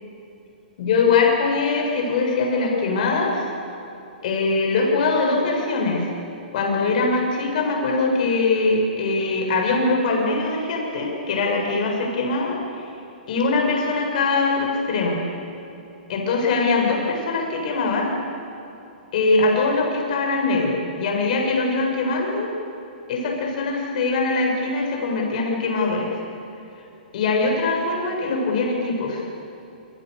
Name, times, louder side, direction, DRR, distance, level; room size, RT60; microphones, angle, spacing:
voice 1, 0.8-3.5 4.2-6.1 6.5-12.6 13.3-15.2 16.1-18.1 19.1-22.5 23.1-26.1 27.1-29.2, left 3 dB, 55° left, 0 dB, 7.7 m, -22 dB
27.0 x 26.0 x 7.1 m, 2.9 s
hypercardioid pair, 125°, 5 cm